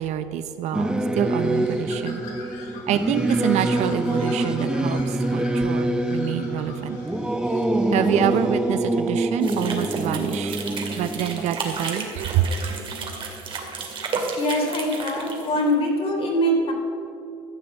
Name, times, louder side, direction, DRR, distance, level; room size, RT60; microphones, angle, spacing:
voice 1, 0.0-2.2 2.9-7.0 7.9-10.6 11.0-12.5, right 10 dB, 55° right, 10 dB, 0.6 m, -26 dB
Singing / Musical instrument, 0.7-12.6, right 1 dB, 5° right, 0.7 m, -25 dB
Bird, 1.4-8.9, left 4 dB, 70° left, 2.9 m, -44 dB
sound 1, 9.4-15.7, right 4 dB, 40° right, 2.4 m, -32 dB
voice 2, 14.4-16.7, equal, 40° left, 1 dB, 3.2 m, -23 dB
14.0 x 7.4 x 7.1 m, 2.7 s
supercardioid pair, 105°, 14 cm